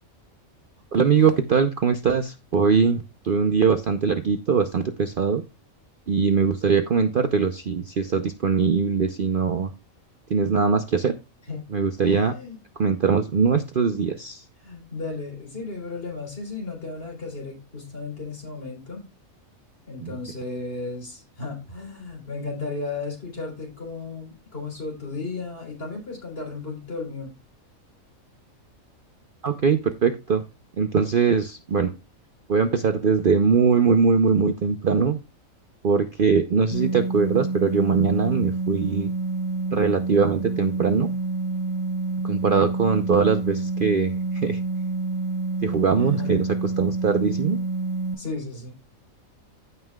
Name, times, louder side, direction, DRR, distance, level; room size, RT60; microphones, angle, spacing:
voice 1, 0.9-5.4 6.1-9.7 10.3-11.1 11.7-12.3 12.8-14.4 20.0-20.1 29.4-30.4 30.8-31.9 32.5-35.2 35.8-39.1 39.7-41.1 42.2-44.6 45.6-46.5 46.8-47.6, right 5 dB, 50° right, 0.7 m, -21 dB
voice 2, 12.0-12.6 14.6-19.1 19.9-27.3 46.0-46.4 48.2-48.7, left 3 dB, 45° left, 3.9 m, -34 dB
sound 1, 36.7-48.1, right 3 dB, 20° right, 2.9 m, -28 dB
15.0 x 5.6 x 2.3 m
omnidirectional pair, 1.4 m